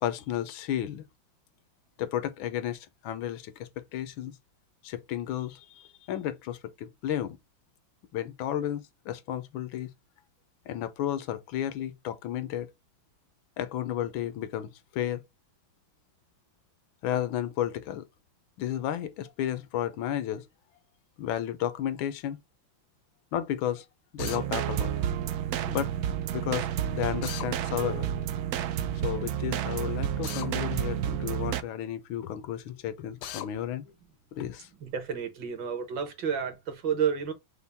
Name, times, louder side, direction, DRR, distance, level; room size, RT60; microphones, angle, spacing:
voice 1, 0.0-1.1 2.0-4.4 4.8-7.4 8.1-9.9 10.7-12.7 13.6-15.2 17.0-18.1 18.6-20.5 21.2-22.4 23.3-23.9 24.1-24.9 25.7-26.1 26.3-28.1 29.0-33.8 34.3-34.7, left 11 dB, 85° left, 1.5 m, -33 dB
Drill, 24.2-24.4 27.2-27.5 30.2-30.5 33.2-33.5, left 11 dB, 70° left, 1.1 m, -37 dB
sound 1, 24.2-31.6, right 10 dB, 85° right, 0.8 m, -30 dB
voice 2, 34.8-37.3, right 7 dB, 65° right, 1.8 m, -30 dB
5.6 x 2.2 x 3.4 m
omnidirectional pair, 2.2 m